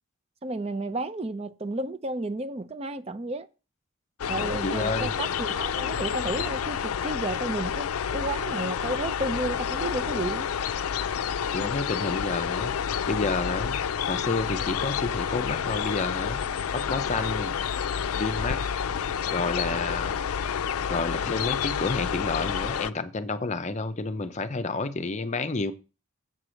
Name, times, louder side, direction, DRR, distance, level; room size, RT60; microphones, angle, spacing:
voice 1, 0.4-3.5 4.3-10.5, right 2 dB, 30° right, 0.5 m, -32 dB
sound 1, 4.2-22.9, left 7 dB, 85° left, 0.4 m, -29 dB
voice 2, 4.4-5.1 11.5-12.8 13.1-13.8 14.1-16.4 16.7-17.6 18.1-18.6 19.3-20.1 20.9-25.7, left 3 dB, 30° left, 0.6 m, -30 dB
7.7 x 4.8 x 6.3 m
head